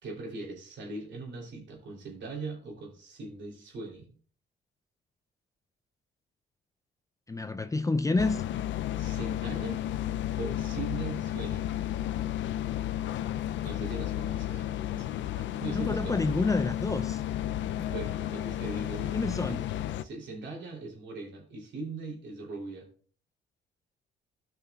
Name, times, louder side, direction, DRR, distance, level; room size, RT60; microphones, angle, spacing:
voice 1, 0.0-4.1 9.0-9.8 10.4-11.7 13.6-15.1 15.4-16.2 17.5-17.6 17.9-19.6 20.0-22.9, right 3 dB, 65° right, 3.1 m, -40 dB
voice 2, 7.3-8.4 15.7-17.2 19.1-19.7, left 3 dB, 15° left, 0.4 m, -28 dB
sound 1, 8.2-20.0, left 12 dB, 70° left, 0.5 m, -32 dB
14.0 x 5.8 x 2.4 m
cardioid pair, 90°, 20 cm